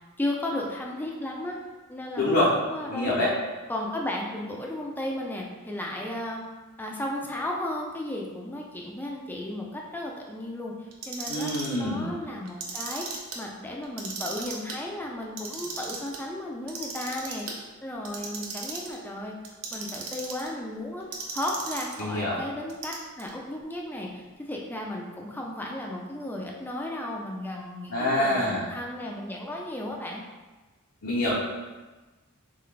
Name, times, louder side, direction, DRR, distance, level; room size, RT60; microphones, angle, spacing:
voice 1, 0.2-1.6 1.9-3.3 3.7-6.4 6.8-10.7 11.1-17.5 17.8-19.4 19.7-21.0 21.3-30.2, left 1 dB, 10° left, -1 dB, 0.4 m, -34 dB
voice 2, 2.2-2.5 2.9-3.3 11.3-12.1 22.0-22.4 27.9-28.7 31.0-31.4, left 1 dB, 75° left, -6 dB, 0.7 m, -25 dB
Clock, 10.9-11.8 12.5-13.4 13.8-14.8 15.2-16.2 16.7-17.6 18.0-19.0 19.4-20.5 21.1-22.0 22.7-23.3, right 4 dB, 75° right, 0.7 m, -36 dB
3.9 x 3.2 x 3.3 m, 1.2 s
head